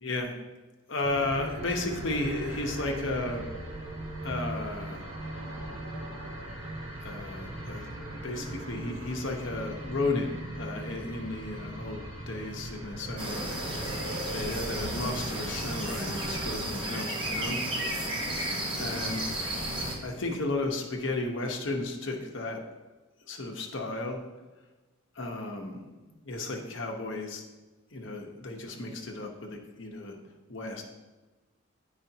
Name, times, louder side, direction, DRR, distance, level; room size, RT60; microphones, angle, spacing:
voice 1, 0.0-0.3 0.9-3.5 4.2-5.1 7.0-7.9 8.2-12.0 12.3-13.5 14.3-17.6 18.8-19.3 20.0-22.6 23.3-24.2 25.2-25.8 26.2-27.4 27.9-30.2 30.5-30.8, left 2 dB, 60° left, 2 dB, 0.9 m, -33 dB
sound 1, 1.0-16.5, right 1 dB, 80° right, 1.8 m, -39 dB
sound 2, 13.2-20.0, right 1 dB, 25° right, 1.0 m, -33 dB
10.0 x 4.9 x 2.8 m, 1.2 s
head